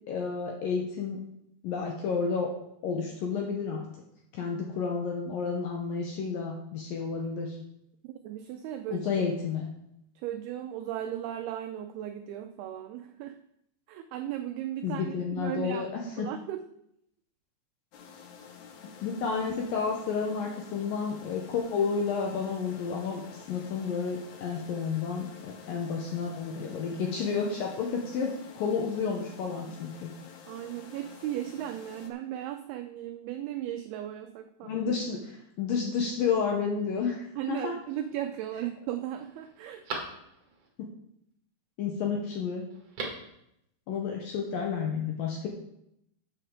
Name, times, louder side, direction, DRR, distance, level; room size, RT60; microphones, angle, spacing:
voice 1, 0.1-1.2 1.6-2.5 2.8-3.9 4.3-7.6 8.9-9.7 14.8-16.3 18.8-23.2 23.5-30.1 34.6-37.7 41.8-42.6 43.9-45.5, left 5 dB, 75° left, 1 dB, 2.1 m, -31 dB
voice 2, 8.0-9.1 10.2-13.4 13.9-15.9 16.2-16.6 30.5-34.8 37.4-39.8, right 11 dB, 85° right, 7 dB, 2.2 m, -36 dB
sound 1, 17.9-32.1, left 6 dB, 90° left, 1.6 m, -49 dB
Telephone, 37.6-38.2 38.7-38.8 39.2-40.7 42.7-43.3 43.6-43.7, right 3 dB, 50° right, 2.1 m, -41 dB
12.0 x 8.3 x 3.7 m, 0.78 s
omnidirectional pair, 5.1 m